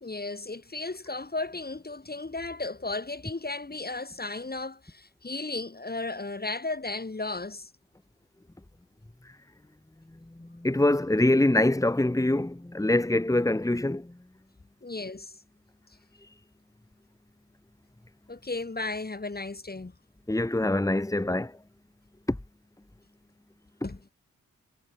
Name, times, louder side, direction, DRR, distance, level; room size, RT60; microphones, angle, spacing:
voice 1, 0.0-7.7 14.8-15.4 18.3-19.9 23.8-24.1, left 3 dB, 30° left, 2.8 m, -35 dB
voice 2, 10.5-14.1 20.3-21.5, left 1 dB, 10° left, 1.8 m, -24 dB
wide cardioid pair, 85°, 32 cm